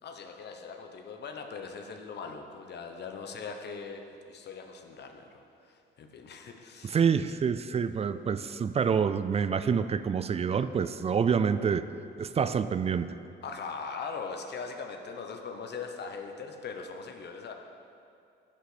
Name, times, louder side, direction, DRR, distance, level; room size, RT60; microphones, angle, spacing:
voice 1, 0.0-7.0 13.4-17.5, left 5 dB, 60° left, 4 dB, 0.9 m, -40 dB
voice 2, 6.8-11.9 12.2-13.2, right 6 dB, 30° right, 13 dB, 0.3 m, -27 dB
10.0 x 6.5 x 5.0 m, 2.6 s
cardioid pair, 90°, 20 cm